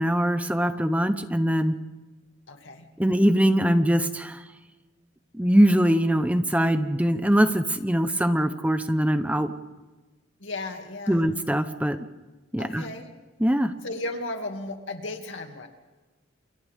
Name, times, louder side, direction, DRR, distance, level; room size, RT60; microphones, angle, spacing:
voice 1, 0.0-1.8 3.0-4.4 5.3-9.5 11.1-12.0 12.5-12.9 13.4-13.7, equal, 10° right, 9 dB, 0.9 m, -22 dB
voice 2, 2.5-2.9 10.4-11.3 12.6-13.1 13.8-15.7, left 2 dB, 80° left, 4 dB, 2.5 m, -35 dB
30.0 x 29.0 x 3.7 m, 1.2 s
head